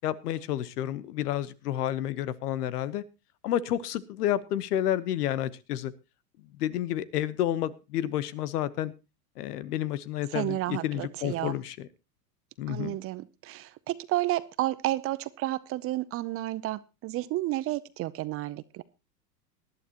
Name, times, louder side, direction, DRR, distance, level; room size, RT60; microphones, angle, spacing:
voice 1, 0.0-3.0 3.4-5.9 6.6-8.9 9.4-11.9 12.6-13.0, left 12 dB, 75° left, 18 dB, 1.1 m, -30 dB
voice 2, 10.3-11.6 12.7-18.8, right 16 dB, 30° right, 17 dB, 0.6 m, -31 dB
19.0 x 11.5 x 2.9 m, 0.27 s
hypercardioid pair, 115°, 47 cm